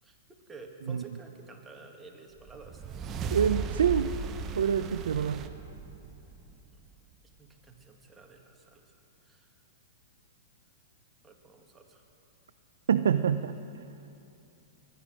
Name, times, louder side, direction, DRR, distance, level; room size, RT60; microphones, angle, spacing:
voice 1, 0.0-2.8 6.6-6.8 7.4-8.9 9.2-9.6 11.2-12.0, right 3 dB, 10° right, 2 dB, 1.8 m, -51 dB
sound 1, 2.4-7.0, right 4 dB, 30° right, 0.9 m, -36 dB
voice 2, 3.3-4.1 4.6-5.5 12.9-13.6, right 8 dB, 85° right, 10 dB, 0.5 m, -26 dB
22.5 x 10.0 x 6.3 m, 2.8 s
hypercardioid pair, 135°, 0 cm